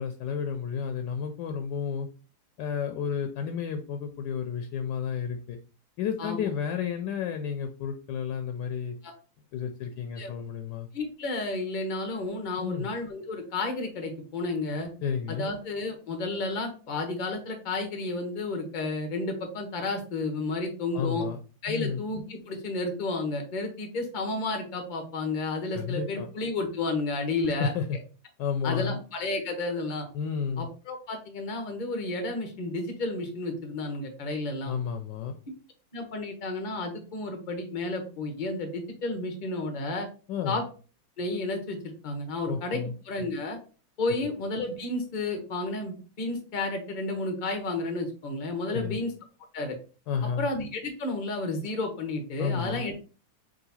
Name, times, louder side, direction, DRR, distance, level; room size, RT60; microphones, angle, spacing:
voice 1, 0.0-2.1 2.6-5.6 6.0-9.0 9.5-10.9 12.6-12.9 15.0-15.5 20.9-21.4 21.7-22.0 25.7-26.3 27.6-28.0 28.4-29.0 30.1-30.7 34.7-35.4 40.3-40.6 42.5-42.9 44.2-44.3 48.7-49.0 50.1-50.5 52.4-52.8, left 7 dB, 75° left, 6 dB, 1.2 m, -31 dB
voice 2, 10.9-14.9 15.3-21.3 21.6-27.7 28.6-30.1 30.6-34.7 35.9-40.1 40.5-40.6 41.2-42.8 43.0-43.6 44.0-49.1 49.5-49.8 50.4-52.9, left 2 dB, 45° left, 3 dB, 0.6 m, -32 dB
3.8 x 2.7 x 4.0 m, 0.36 s
omnidirectional pair, 2.0 m